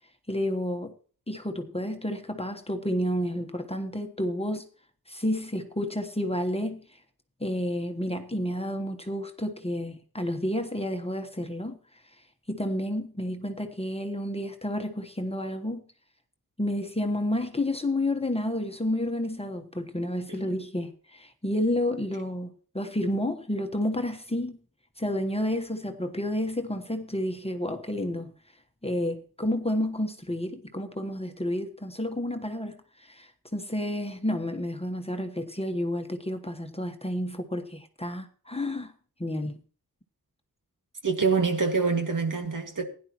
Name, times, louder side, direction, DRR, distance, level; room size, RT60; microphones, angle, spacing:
voice 1, 0.3-0.9 1.3-4.7 5.1-6.8 7.4-11.8 12.5-15.8 16.6-24.6 25.0-28.3 28.8-38.9 39.2-39.6, left 1 dB, 15° left, 1.2 m, -30 dB
voice 2, 41.0-42.8, right 4 dB, 55° right, 2.1 m, -26 dB
16.0 x 10.5 x 3.0 m
cardioid pair, 60°, 36 cm